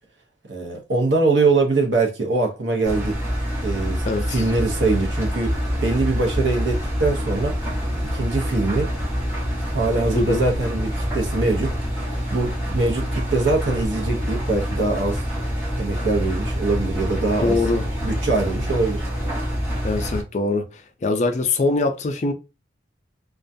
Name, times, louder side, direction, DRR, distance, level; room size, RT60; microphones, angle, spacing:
voice 1, 0.5-3.2 3.6-5.5 5.8-7.5 8.1-8.9 9.7-15.2 15.8-17.6 18.0-19.0, right 3 dB, 70° right, 0.8 m, -23 dB
Engine, 2.8-20.2, equal, 10° right, 0.7 m, -26 dB
voice 2, 4.0-4.4 10.2-10.4 17.4-17.9 19.8-22.3, left 3 dB, 40° left, 0.4 m, -23 dB
2.3 x 2.1 x 2.6 m
head